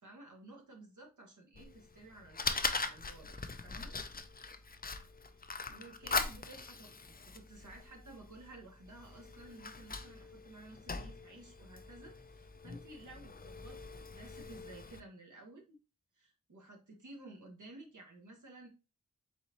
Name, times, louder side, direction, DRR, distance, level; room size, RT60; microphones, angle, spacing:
voice 1, 0.0-3.9 5.4-15.8 16.2-18.7, right 2 dB, 70° right, 1 dB, 1.4 m, -54 dB
Fire, 1.6-15.0, left 4 dB, 30° left, 0.5 m, -41 dB
4.1 x 3.9 x 3.0 m, 0.30 s
wide cardioid pair, 85°, 32 cm